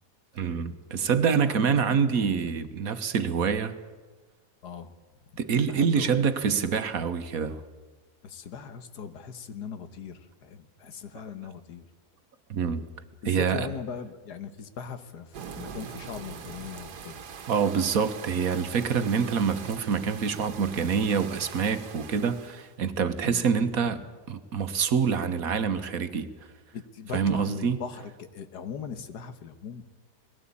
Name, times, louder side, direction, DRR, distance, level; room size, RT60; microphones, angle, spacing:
voice 1, 0.3-3.7 5.4-7.6 12.5-12.9 13.2-13.7 17.5-24.0 24.3-26.3 27.1-27.8, right 6 dB, 60° right, 1.5 m, -26 dB
voice 2, 1.2-2.5 4.6-4.9 5.7-6.3 8.2-11.9 13.2-17.2 23.2-24.1 26.7-29.9, left 7 dB, 90° left, 1.8 m, -40 dB
sound 1, 15.3-22.7, right 6 dB, 85° right, 1.8 m, -42 dB
20.5 x 16.5 x 8.5 m
omnidirectional pair, 1.7 m